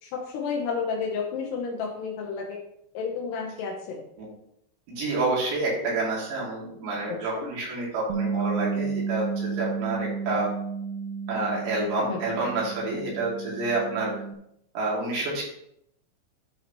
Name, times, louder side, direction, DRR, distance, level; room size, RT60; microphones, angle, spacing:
voice 1, 0.0-2.6 2.9-4.0 7.3-7.5 12.1-12.2, left 5 dB, 75° left, -1 dB, 2.7 m, -31 dB
voice 2, 4.9-10.5 11.3-14.1 14.7-15.4, right 2 dB, 65° right, -5 dB, 4.5 m, -28 dB
Bass guitar, 8.1-14.4, right 5 dB, 85° right, 2.8 m, -32 dB
13.0 x 4.7 x 3.1 m, 0.75 s
omnidirectional pair, 5.5 m